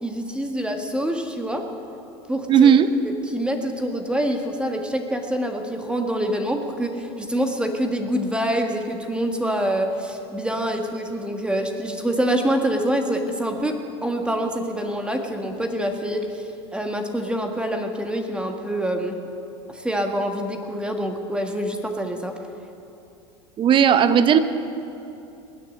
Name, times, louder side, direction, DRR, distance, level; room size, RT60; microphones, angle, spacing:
voice 1, 0.0-1.6 2.3-2.7 3.0-19.2 19.7-22.4, equal, 5° right, 4 dB, 1.6 m, -26 dB
voice 2, 2.5-2.9 23.6-24.4, right 8 dB, 35° right, 12 dB, 0.8 m, -15 dB
19.5 x 6.9 x 9.1 m, 2.8 s
hypercardioid pair, 85°, 15 cm